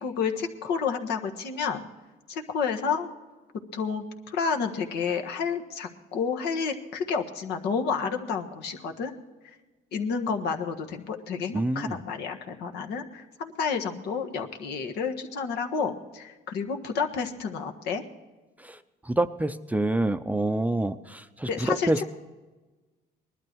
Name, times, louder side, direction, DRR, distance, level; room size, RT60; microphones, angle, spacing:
voice 1, 0.0-1.9 2.3-3.1 3.7-9.1 9.9-18.0 21.4-22.1, left 5 dB, 80° left, 5 dB, 1.5 m, -30 dB
voice 2, 11.5-12.0 18.6-18.8 19.0-22.0, right 2 dB, 10° right, 10 dB, 0.5 m, -27 dB
19.5 x 12.0 x 4.6 m, 1.2 s
cardioid pair, 110°, 17 cm